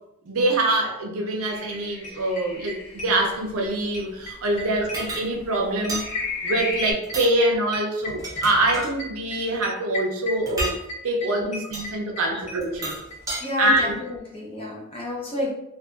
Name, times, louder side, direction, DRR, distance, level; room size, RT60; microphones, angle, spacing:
voice 1, 0.2-6.1 6.4-10.7 11.0-13.0 13.6-13.9, right 2 dB, 70° right, 1 dB, 0.5 m, -24 dB
sound 1, 1.4-1.5 1.7-1.8 2.0-3.7 3.9-13.2 13.4-13.5 13.7-13.8 14.0-14.1, left 1 dB, 80° left, 1.1 m, -35 dB
sound 2, 1.4-6.9, left 3 dB, 55° left, 1.0 m, -35 dB
sound 3, 4.9-5.3 5.9-6.1 7.0-7.3 8.0-8.9 10.5-10.8 11.7-11.9 12.6-13.4, right 1 dB, 15° right, 0.6 m, -31 dB
voice 2, 7.9-8.3 8.6-8.7 10.0-10.1 10.4-10.5 11.4-11.6 12.3-13.1 13.4-15.5, left 2 dB, 25° left, -3 dB, 0.6 m, -32 dB
2.6 x 2.5 x 2.3 m, 0.82 s
head